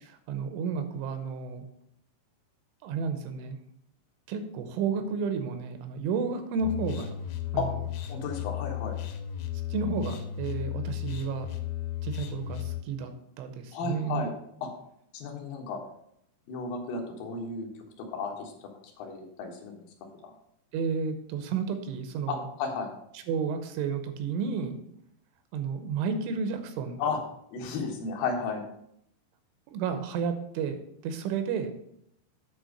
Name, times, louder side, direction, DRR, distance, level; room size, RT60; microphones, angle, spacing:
voice 1, 0.3-1.7 2.8-3.6 4.3-7.1 7.5-7.7 9.7-11.5 12.0-13.1 13.4-14.3 20.7-22.5 23.3-24.8 25.5-27.0 29.7-30.8 31.0-31.7, right 5 dB, 85° right, 8 dB, 3.4 m, -31 dB
sound 1, 6.6-12.8, left 11 dB, 90° left, 3.3 m, -35 dB
voice 2, 8.1-9.0 13.7-14.3 14.6-14.7 15.1-15.8 16.5-17.7 18.0-18.5 19.0-19.9 20.2-20.3 22.3-22.9 27.0-27.2 27.5-28.6, left 4 dB, 60° left, 1 dB, 2.7 m, -33 dB
9.1 x 4.5 x 6.5 m, 0.73 s
omnidirectional pair, 5.4 m